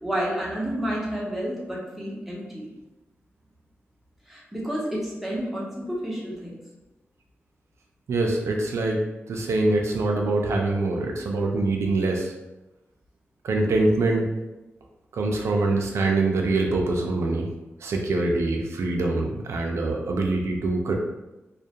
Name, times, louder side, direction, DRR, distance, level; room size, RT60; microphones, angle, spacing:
voice 1, 0.0-2.7 4.3-6.6, equal, 5° right, -5 dB, 0.6 m, -30 dB
voice 2, 8.1-9.0 9.3-12.3 13.4-14.3 15.1-17.5 17.8-21.0, right 2 dB, 90° right, 1 dB, 0.3 m, -24 dB
2.3 x 2.1 x 2.7 m, 1.0 s
wide cardioid pair, 135°, 5 cm